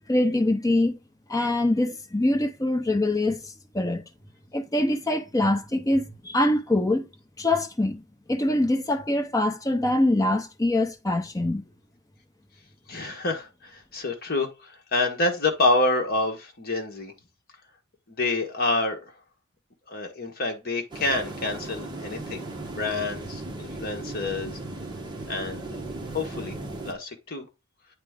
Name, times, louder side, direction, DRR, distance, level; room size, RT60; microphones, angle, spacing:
voice 1, 0.1-1.0 1.3-4.0 4.5-7.1 7.4-8.0 8.3-11.6, left 1 dB, 15° left, 0.7 m, -24 dB
voice 2, 12.9-17.1 18.1-19.2 19.9-22.5 22.8-24.6 25.3-25.8 26.1-26.5 26.8-27.5, left 2 dB, 50° left, 1.4 m, -27 dB
sound 1, 20.9-26.9, right 2 dB, 20° right, 1.1 m, -37 dB
8.7 x 3.3 x 3.6 m
head